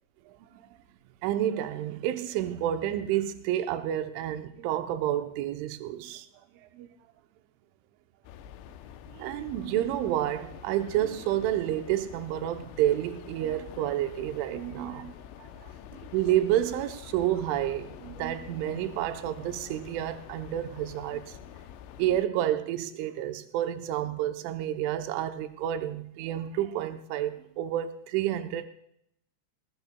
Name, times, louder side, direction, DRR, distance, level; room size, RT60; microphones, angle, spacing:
voice 1, 1.2-6.3 6.8-6.9 9.1-15.7 16.1-21.4 22.0-28.7, right 12 dB, 85° right, 3.2 m, -30 dB
sound 1, 8.2-22.3, left 10 dB, 80° left, 2.8 m, -47 dB
20.5 x 19.5 x 2.2 m
omnidirectional pair, 5.4 m